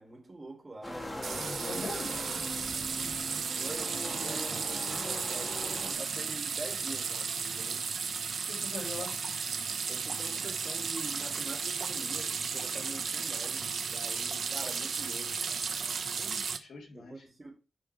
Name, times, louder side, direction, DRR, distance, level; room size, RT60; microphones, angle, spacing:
voice 1, 0.0-1.9 3.0-3.1 3.6-5.6 6.0-7.9 9.9-16.0 16.9-17.6, right 2 dB, 25° right, 3.8 m, -45 dB
sound 1, 0.8-5.9, left 1 dB, 15° left, 2.3 m, -41 dB
sound 2, 1.2-16.6, right 5 dB, 80° right, 1.0 m, -34 dB
voice 2, 1.4-2.1 8.5-9.1 16.2-17.1, left 2 dB, 75° left, 3.2 m, -42 dB
10.0 x 5.6 x 3.7 m
wide cardioid pair, 120°, 0 cm